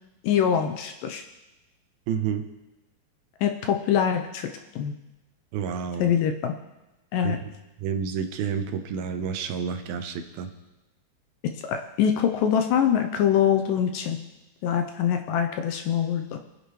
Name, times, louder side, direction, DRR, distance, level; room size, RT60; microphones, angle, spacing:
voice 1, 0.2-1.2 3.4-4.9 6.0-6.5 7.1-7.4 11.6-14.2 14.6-16.4, left 8 dB, 75° left, 5 dB, 2.2 m, -24 dB
voice 2, 2.1-2.4 5.5-6.1 7.2-7.5 7.8-10.5, right 7 dB, 80° right, 7 dB, 2.7 m, -29 dB
24.0 x 9.7 x 3.1 m, 1.0 s
omnidirectional pair, 4.4 m